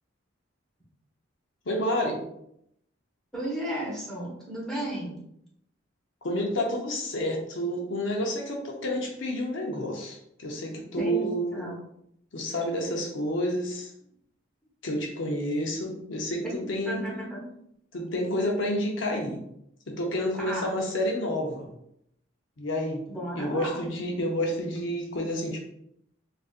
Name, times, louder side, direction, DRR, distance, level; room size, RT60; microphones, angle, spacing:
voice 1, 1.7-2.2 6.2-11.7 12.3-13.9 14.8-17.1 17.9-19.4 19.9-21.7 22.6-23.0 23.4-25.6, equal, 70° left, 1 dB, 0.6 m, -29 dB
voice 2, 3.3-5.2 11.0-11.8 16.9-17.4 20.4-20.7 23.1-23.8, right 1 dB, 5° left, -6 dB, 1.2 m, -33 dB
3.9 x 2.5 x 2.4 m, 0.74 s
head